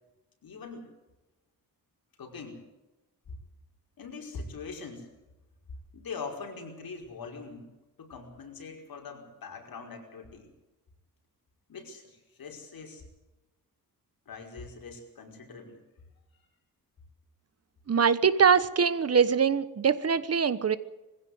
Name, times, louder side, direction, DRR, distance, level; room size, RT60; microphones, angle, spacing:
voice 1, 0.4-0.9 2.2-2.6 3.3-3.4 4.0-5.1 5.9-7.7 8.0-10.5 11.7-13.0 14.3-15.8, left 4 dB, 75° left, 2 dB, 5.4 m, -42 dB
voice 2, 17.9-20.8, right 6 dB, 45° right, 15 dB, 1.1 m, -23 dB
21.5 x 16.0 x 8.0 m, 1.0 s
wide cardioid pair, 130°, 36 cm